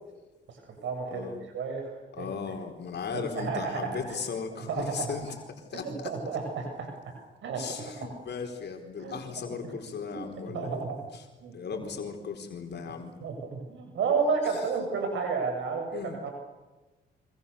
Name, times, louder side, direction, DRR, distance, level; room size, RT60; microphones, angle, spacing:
voice 1, 0.5-1.9 2.2-2.3 3.1-4.2 4.6-5.1 5.7-7.1 7.4-8.1 9.0-9.2 10.0-10.2 10.5-11.1 11.4-11.5 13.2-16.3, right 5 dB, 75° right, 3 dB, 7.6 m, -32 dB
voice 2, 1.1-1.4 2.1-5.3 5.7-6.1 7.5-10.8 11.1-11.3 11.5-13.2 14.4-14.6 15.9-16.3, left 6 dB, 60° left, 4 dB, 4.4 m, -37 dB
28.5 x 25.5 x 7.1 m, 1.2 s
supercardioid pair, 65°, 20 cm